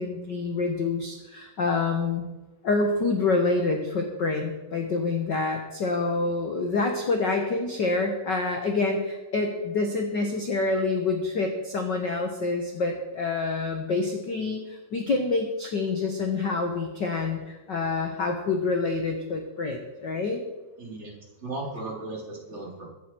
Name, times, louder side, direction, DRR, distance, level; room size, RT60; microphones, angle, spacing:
voice 1, 0.0-2.2 2.6-20.4, left 3 dB, 75° left, 3 dB, 1.0 m, -27 dB
voice 2, 20.8-21.1 21.4-22.9, right 2 dB, 20° right, -2 dB, 3.0 m, -36 dB
23.0 x 8.0 x 4.5 m, 1.1 s
omnidirectional pair, 3.9 m